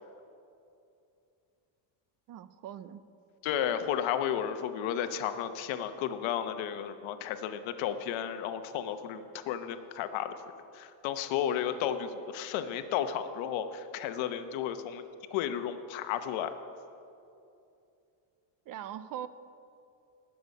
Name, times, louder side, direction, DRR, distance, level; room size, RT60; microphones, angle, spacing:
voice 1, 2.3-3.0 18.7-19.3, right 10 dB, 45° right, 14 dB, 0.5 m, -41 dB
voice 2, 3.4-10.3 10.7-15.0 15.3-16.5, left 9 dB, 85° left, 10 dB, 0.9 m, -33 dB
19.0 x 7.1 x 5.3 m, 2.7 s
cardioid pair, 140°, 46 cm